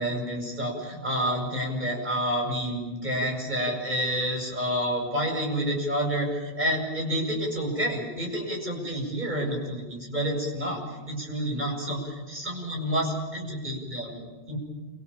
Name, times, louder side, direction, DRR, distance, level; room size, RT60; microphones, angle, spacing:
voice 1, 0.0-14.6, equal, 35° right, 0 dB, 8.1 m, -29 dB
28.5 x 26.0 x 7.3 m, 1.2 s
omnidirectional pair, 1.3 m